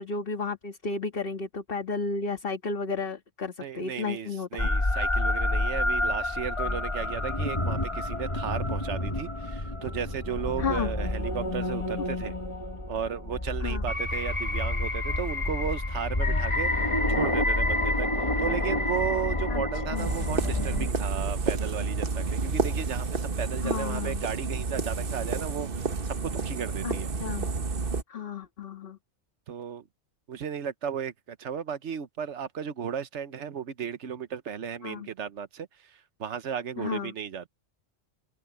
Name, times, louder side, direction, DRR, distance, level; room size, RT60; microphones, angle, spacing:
voice 1, 0.0-4.7 10.6-10.9 13.6-13.8 19.5-19.6 19.9-20.1 23.6-24.2 26.8-27.5 28.1-29.0 34.8-35.1 36.8-37.1, left 4 dB, 55° left, 1.9 m, -33 dB
voice 2, 3.6-12.4 12.9-16.7 17.1-27.1 29.5-29.9 30.3-37.5, right 7 dB, 85° right, 1.3 m, -35 dB
sound 1, 4.6-20.9, left 1 dB, 25° left, 1.7 m, -28 dB
sound 2, 20.0-28.0, right 4 dB, 55° right, 1.4 m, -30 dB
omnidirectional pair, 1.2 m